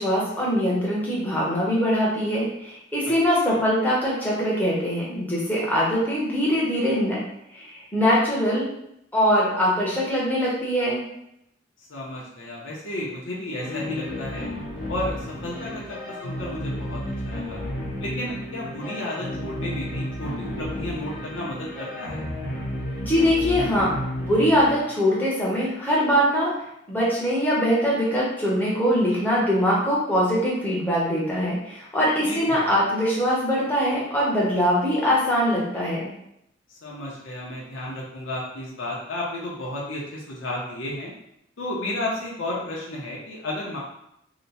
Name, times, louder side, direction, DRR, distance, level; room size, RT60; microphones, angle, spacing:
voice 1, 0.0-7.2 7.5-8.6 9.1-11.0 23.0-23.9 24.2-26.5 26.9-36.1, equal, 10° left, -6 dB, 0.9 m, -22 dB
voice 2, 11.9-14.5 14.9-17.6 18.0-22.2 32.2-32.7 36.7-41.1 41.6-43.8, left 1 dB, 85° left, -4 dB, 0.8 m, -33 dB
sound 1, 13.6-24.8, left 1 dB, 50° left, 0.9 m, -32 dB
2.9 x 2.2 x 4.0 m, 0.78 s
head